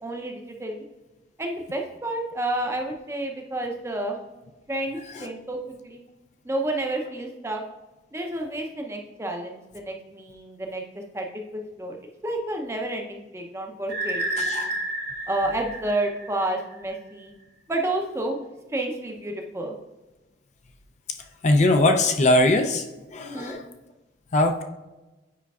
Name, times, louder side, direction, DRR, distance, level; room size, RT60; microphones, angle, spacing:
voice 1, 0.0-0.8 1.4-4.2 4.7-6.0 6.4-7.6 8.1-10.8 11.1-12.0 12.2-14.7 15.3-17.3 17.7-18.4 18.7-19.8 23.3-23.6, right 1 dB, 15° right, 2 dB, 0.6 m, -30 dB
sound 1, 13.9-16.7, right 1 dB, 60° right, 1.0 m, -30 dB
voice 2, 14.4-14.7 21.4-22.8 23.1-23.7 24.3-24.6, left 2 dB, 40° left, 5 dB, 0.4 m, -21 dB
8.2 x 5.0 x 2.3 m, 1.1 s
head